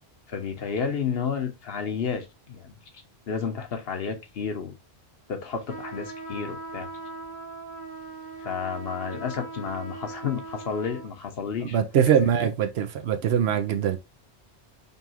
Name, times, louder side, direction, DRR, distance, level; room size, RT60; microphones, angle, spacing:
voice 1, 0.3-2.8 3.3-4.8 5.3-6.9 8.4-12.3, left 6 dB, 65° left, 1.0 m, -31 dB
sound 1, 5.7-11.1, right 3 dB, 45° right, 1.3 m, -39 dB
voice 2, 11.7-14.0, right 8 dB, 70° right, 0.9 m, -22 dB
5.3 x 2.4 x 2.8 m
omnidirectional pair, 1.1 m